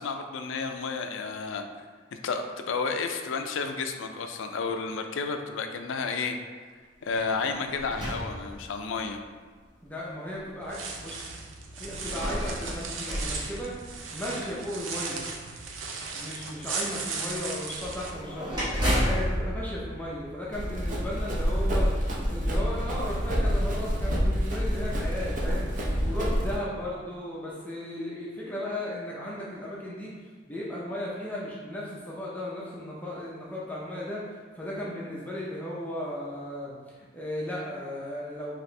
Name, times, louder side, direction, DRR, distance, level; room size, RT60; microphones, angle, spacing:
voice 1, 0.0-1.6 2.2-6.4 7.0-9.2, left 4 dB, 75° left, 6 dB, 0.4 m, -31 dB
sound 1, 7.1-9.1 9.9-10.0 11.8-14.4 17.8-20.8, equal, 20° right, 1.1 m, -32 dB
voice 2, 9.8-11.2 11.8-13.7 14.1-15.3 16.1-25.7 26.1-38.6, left 1 dB, 10° left, -6 dB, 0.5 m, -36 dB
Walking on Dry Leaves, 10.6-18.1, right 4 dB, 80° right, 0.5 m, -37 dB
Run, 20.5-26.6, equal, 40° right, 0.6 m, -27 dB
4.2 x 2.9 x 3.2 m, 1.5 s
head